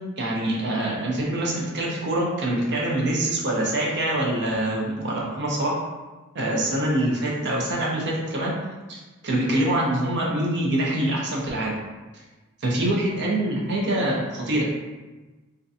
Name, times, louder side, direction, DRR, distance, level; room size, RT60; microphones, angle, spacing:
voice 1, 0.2-5.8 6.3-8.5 8.9-11.7 12.6-14.7, right 1 dB, 55° right, -3 dB, 0.6 m, -25 dB
2.4 x 2.2 x 2.6 m, 1.2 s
head